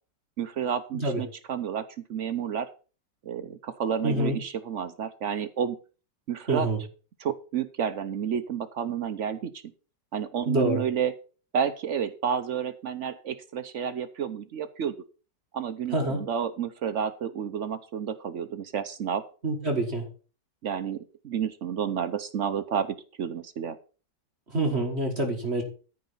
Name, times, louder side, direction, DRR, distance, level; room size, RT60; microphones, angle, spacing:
voice 1, 0.4-2.7 3.2-5.8 6.3-6.7 7.2-9.5 10.1-11.1 11.5-14.9 15.5-19.3 20.6-23.8, right 8 dB, 60° right, 12 dB, 0.8 m, -30 dB
voice 2, 4.0-4.4 6.5-6.8 10.5-10.8 15.9-16.2 19.4-20.0 24.5-25.6, right 1 dB, 40° right, 3 dB, 1.8 m, -26 dB
13.5 x 5.0 x 5.6 m, 0.36 s
omnidirectional pair, 1.9 m